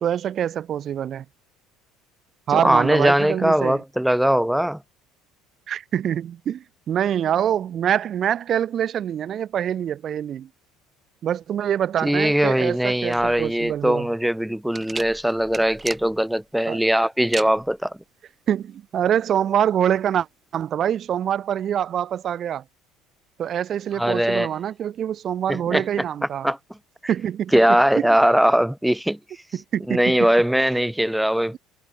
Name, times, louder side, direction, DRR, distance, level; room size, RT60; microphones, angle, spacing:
voice 1, 0.0-1.2 2.5-3.8 5.7-10.5 11.2-14.1 16.7-16.8 18.5-20.3 20.5-22.6 23.4-26.5 27.1-27.6 28.0-28.1 29.5-30.3, right 9 dB, 45° right, 2.3 m, -25 dB
voice 2, 2.5-4.8 12.0-18.0 23.9-24.5 25.5-25.9 26.4-26.6 27.5-29.2 29.9-31.6, equal, 5° right, 2.1 m, -20 dB
sound 1, 13.1-20.7, right 4 dB, 20° right, 2.0 m, -39 dB
figure-of-eight pair, 60°, 0 cm